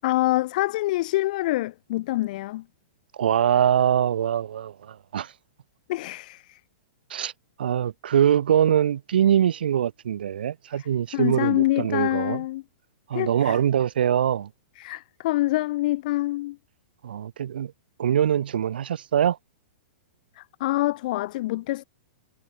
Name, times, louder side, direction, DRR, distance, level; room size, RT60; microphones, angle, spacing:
voice 1, 0.0-2.6 5.9-6.6 11.1-12.6 13.1-13.6 14.8-16.6 20.4-21.8, left 17 dB, 55° left, 6.1 m, -26 dB
voice 2, 3.1-5.3 7.1-7.3 7.6-12.4 13.1-14.5 17.0-17.7 18.0-19.4, right 9 dB, 75° right, 3.2 m, -23 dB
hypercardioid pair, 135°, 5 cm